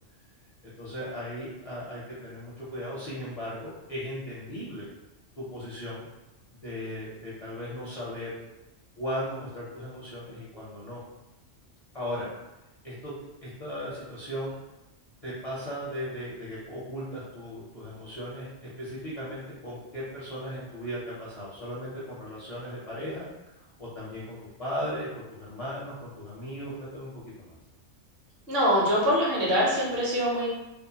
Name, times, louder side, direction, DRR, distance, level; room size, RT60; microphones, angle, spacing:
voice 1, 0.8-4.9 5.4-6.1 6.6-8.3 9.0-11.0 11.9-12.3 12.8-13.1 13.4-14.6 15.2-18.5 18.8-27.1 27.4-27.5, equal, 40° left, -9 dB, 0.5 m, -37 dB
voice 2, 28.5-30.5, equal, 55° right, -5 dB, 1.0 m, -24 dB
2.7 x 2.1 x 2.7 m, 0.97 s
omnidirectional pair, 1.3 m